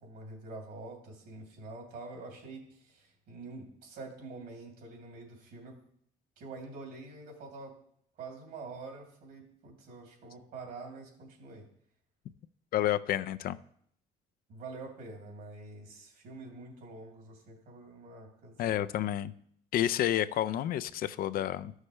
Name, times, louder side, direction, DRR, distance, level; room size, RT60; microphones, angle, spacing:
voice 1, 0.0-5.8 6.4-7.7 8.2-11.6 14.5-18.6, right 3 dB, 75° right, 0 dB, 2.9 m, -46 dB
voice 2, 12.7-13.6 18.6-19.3 19.7-21.7, left 12 dB, 60° left, 14 dB, 0.4 m, -30 dB
13.5 x 6.4 x 3.2 m, 0.68 s
cardioid pair, 110°, 17 cm